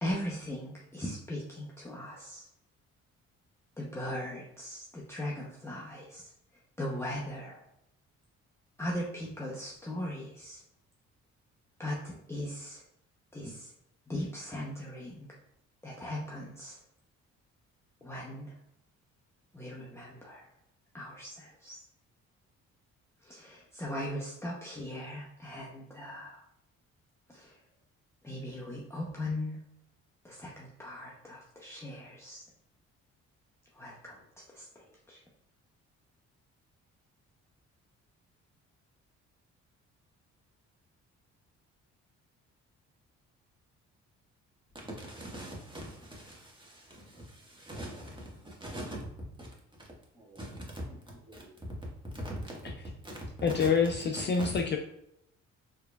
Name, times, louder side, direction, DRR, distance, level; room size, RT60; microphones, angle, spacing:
voice 1, 0.0-2.5 3.8-6.3 6.8-7.6 8.8-10.6 11.8-12.8 13.3-13.7 14.1-15.3 15.8-16.8 18.0-18.5 19.5-20.5 20.9-21.8 23.2-26.4 27.3-27.6 28.2-29.7 30.2-32.4 33.7-35.2, left 1 dB, 10° left, -4 dB, 0.7 m, -39 dB
voice 2, 44.7-49.0 49.4-49.5 49.8-49.9 50.1-51.5 52.1-52.7 53.0-53.3 53.5-53.7 54.1-54.5, right 1 dB, 15° right, -3 dB, 1.5 m, -42 dB
voice 3, 53.4-54.8, left 5 dB, 35° left, 3 dB, 0.4 m, -27 dB
4.6 x 3.2 x 2.3 m, 0.79 s
cardioid pair, 90°, 30 cm